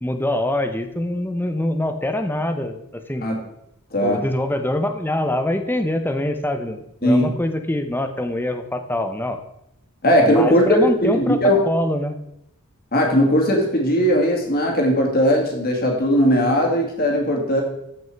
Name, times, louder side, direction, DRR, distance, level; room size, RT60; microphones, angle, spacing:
voice 1, 0.0-3.2 4.0-9.4 10.2-12.2, left 1 dB, 10° left, 7 dB, 0.7 m, -24 dB
voice 2, 3.9-4.2 7.0-7.3 10.0-11.6 12.9-17.6, equal, 40° left, 1 dB, 2.2 m, -18 dB
13.5 x 5.4 x 4.5 m, 0.81 s
head